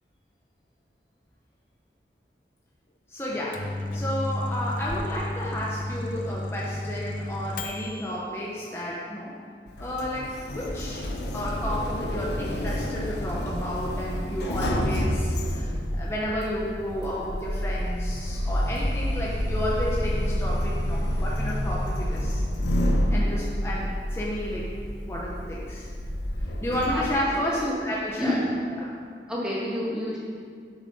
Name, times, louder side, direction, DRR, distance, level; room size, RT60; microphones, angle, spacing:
voice 1, 3.1-3.6 3.9-9.3 9.8-11.0 11.3-22.4 23.1-24.7 25.0-25.9 26.6-28.4 28.8-28.9, equal, 15° left, -5 dB, 0.9 m, -32 dB
Microwave oven, 3.3-8.1, left 1 dB, 50° left, 0.7 m, -32 dB
Sliding door, 9.7-27.1, equal, 80° left, 1.0 m, -28 dB
voice 2, 26.9-27.9 28.2-28.5 29.3-30.2, left 1 dB, 5° right, -7 dB, 2.0 m, -29 dB
8.3 x 6.9 x 5.5 m, 2.1 s
head